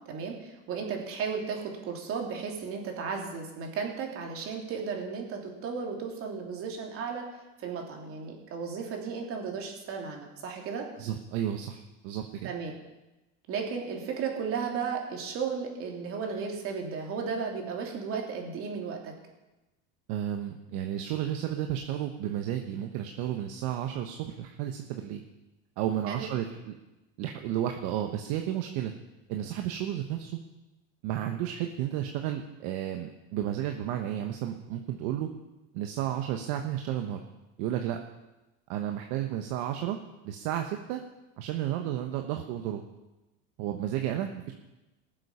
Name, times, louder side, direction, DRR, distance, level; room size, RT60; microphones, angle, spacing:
voice 1, 0.1-7.3 7.6-10.8 12.4-12.7 13.5-19.1 26.1-26.2, right 5 dB, 40° right, 1 dB, 3.1 m, -34 dB
voice 2, 11.0-12.5 20.1-25.2 25.8-26.8 27.2-28.9 29.3-30.3 31.0-35.3 35.7-37.2 37.6-38.0 38.7-40.0 40.2-41.0 41.4-42.8 43.6-44.5, right 11 dB, 60° right, 5 dB, 1.2 m, -32 dB
19.5 x 7.6 x 5.6 m, 1.0 s
supercardioid pair, 125°, 33 cm